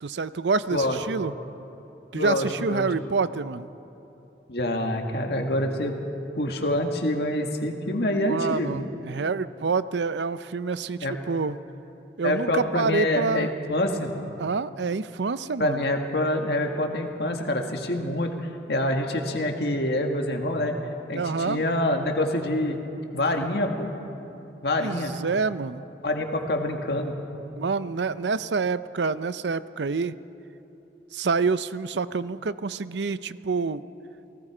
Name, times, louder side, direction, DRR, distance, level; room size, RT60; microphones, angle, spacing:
voice 1, 0.0-1.3 2.1-3.7 8.1-11.6 12.2-13.5 14.4-15.9 21.1-21.6 24.8-25.8 27.6-30.2 31.1-33.8, right 4 dB, 80° right, 15 dB, 0.6 m, -27 dB
voice 2, 2.1-2.9 4.5-6.0 6.4-8.8 11.0-11.2 12.2-14.1 15.6-18.3 18.7-20.7 21.1-22.8 23.1-23.9 24.6-25.1 26.0-27.1, left 1 dB, 65° left, 3 dB, 2.0 m, -26 dB
28.5 x 18.5 x 5.0 m, 3.0 s
head